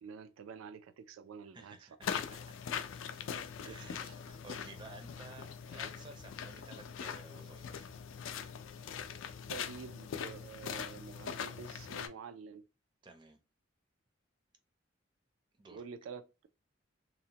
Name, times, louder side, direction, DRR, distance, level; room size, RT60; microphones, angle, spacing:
voice 1, 0.0-1.9 3.6-4.1 9.5-12.6 15.7-16.2, right 6 dB, 85° right, 0.3 m, -48 dB
voice 2, 1.5-2.7 3.6-7.9 13.0-13.4 15.6-15.9, right 3 dB, 25° right, 0.5 m, -54 dB
sound 1, 2.0-12.1, left 7 dB, 70° left, 0.4 m, -42 dB
2.8 x 2.1 x 2.8 m
head